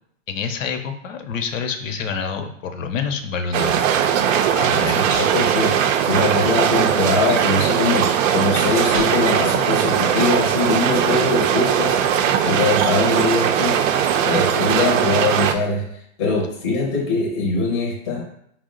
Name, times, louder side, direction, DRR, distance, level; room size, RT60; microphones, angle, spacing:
voice 1, 0.3-3.9 4.6-5.3, left 5 dB, 80° left, 6 dB, 0.7 m, -27 dB
sound 1, 3.5-15.5, right 9 dB, 85° right, 0.5 m, -19 dB
Human voice, 4.2-4.6 5.1-5.4 5.8-6.7 7.0-7.1 7.5-7.8 8.3-11.2, right 3 dB, 30° right, 0.7 m, -34 dB
voice 2, 4.6-5.7 6.1-12.0 12.4-13.8 14.2-15.8 16.2-18.2, left 3 dB, 15° left, -3 dB, 0.5 m, -22 dB
4.5 x 2.1 x 3.7 m, 0.71 s
supercardioid pair, 165°, 38 cm